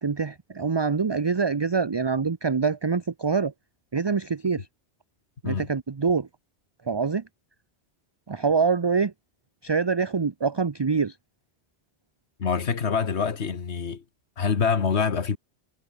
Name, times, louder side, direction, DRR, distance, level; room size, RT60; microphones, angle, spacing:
voice 1, 0.0-3.5 3.9-4.7 5.4-6.3 6.9-7.2 8.3-9.1 9.6-11.1, right 5 dB, 30° right, 0.6 m, -25 dB
voice 2, 12.4-14.0 14.4-15.4, left 6 dB, 85° left, 1.8 m, -25 dB
omnidirectional pair, 1.1 m